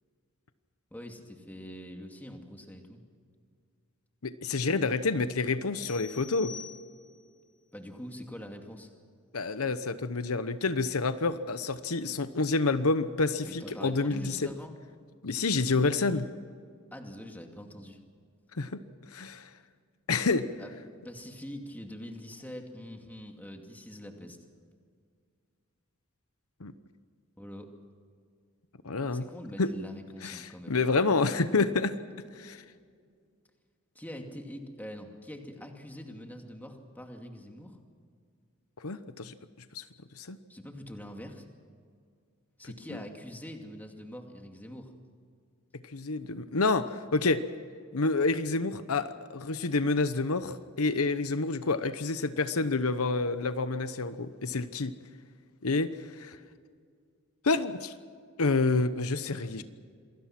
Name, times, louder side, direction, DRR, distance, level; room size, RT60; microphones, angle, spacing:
voice 1, 0.9-3.0 7.7-8.9 13.4-14.7 16.9-18.0 20.6-20.7 21.0-24.4 27.4-27.7 29.1-30.8 33.9-37.8 40.5-41.5 42.6-44.9 59.4-59.6, equal, 10° left, 3 dB, 2.4 m, -44 dB
voice 2, 4.2-6.5 9.3-14.5 15.2-16.3 18.5-18.8 19.1-19.5 20.1-20.5 26.6-26.7 28.8-29.3 29.6-29.7 30.2-32.0 32.3-32.6 38.8-39.3 39.7-39.8 40.2-40.4 45.9-47.4 47.9-54.9 55.6-56.4 57.4-57.9 58.4-59.6, left 3 dB, 80° left, 11 dB, 1.0 m, -28 dB
sound 1, 5.8-7.4, left 7 dB, 55° left, 1.2 m, -46 dB
27.0 x 20.5 x 6.0 m, 2.1 s
head